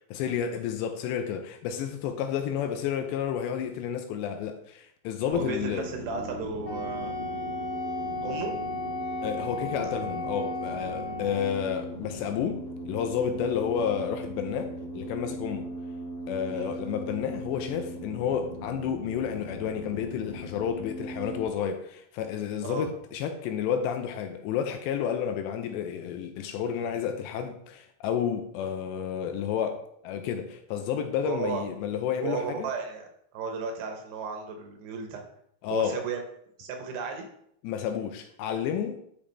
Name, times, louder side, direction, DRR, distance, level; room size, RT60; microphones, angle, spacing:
voice 1, 0.1-5.9 9.2-15.7 16.3-32.7 35.6-36.0 37.6-39.0, left 8 dB, 80° left, 2.7 m, -31 dB
sound 1, 5.3-21.4, equal, 55° left, 2.5 m, -39 dB
voice 2, 5.3-7.2 8.2-8.6 9.8-9.9 16.5-16.7 22.6-22.9 31.2-31.6 32.2-33.1 33.3-35.2 35.7-36.2 36.6-37.3, right 5 dB, 75° right, 2.9 m, -34 dB
Wind instrument woodwind instrument, 6.6-11.5, left 2 dB, 25° left, 3.3 m, -34 dB
10.0 x 5.2 x 3.4 m
omnidirectional pair, 5.3 m